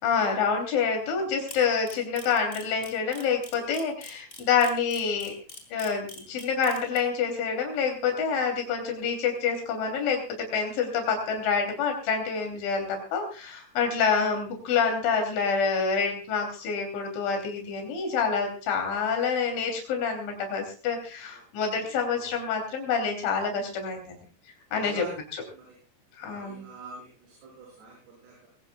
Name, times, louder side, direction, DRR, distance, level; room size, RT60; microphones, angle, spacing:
voice 1, 0.0-5.4 5.7-24.2 24.7-25.1 25.3-25.4 26.2-26.7, left 6 dB, 90° left, 3 dB, 5.6 m, -27 dB
Camera, 1.5-7.0, left 2 dB, 15° left, 2.8 m, -43 dB
voice 2, 21.7-22.3 24.7-25.2 25.5-25.8 26.2-28.5, right 3 dB, 65° right, -3 dB, 8.0 m, -46 dB
21.5 x 18.5 x 2.3 m, 0.38 s
omnidirectional pair, 5.2 m